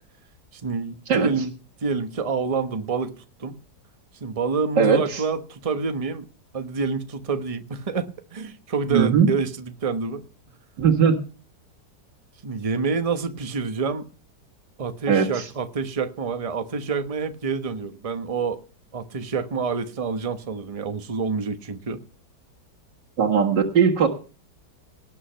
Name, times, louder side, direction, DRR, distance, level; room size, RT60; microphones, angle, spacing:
voice 1, 0.5-1.5 1.8-3.1 3.4-3.6 4.2-6.3 6.5-10.2 12.4-14.1 14.8-18.6 18.9-22.0, right 4 dB, 25° right, 8 dB, 1.0 m, -27 dB
voice 2, 4.8-5.2 8.9-9.3 10.8-11.2 15.1-15.5 23.2-24.1, right 6 dB, 75° right, -1 dB, 2.3 m, -19 dB
18.5 x 8.3 x 5.7 m, 0.37 s
omnidirectional pair, 1.9 m